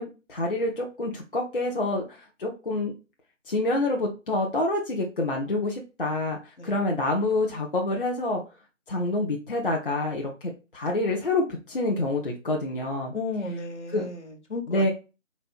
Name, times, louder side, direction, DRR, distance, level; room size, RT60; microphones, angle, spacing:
voice 1, 0.0-2.9 3.5-6.4 6.6-8.4 8.9-13.1 13.9-14.0 14.7-14.9, left 2 dB, 45° left, 0.6 m, -27 dB
voice 2, 13.1-14.9, left 3 dB, 60° left, 1.1 m, -34 dB
4.1 x 2.1 x 4.2 m
figure-of-eight pair, 160°, 39 cm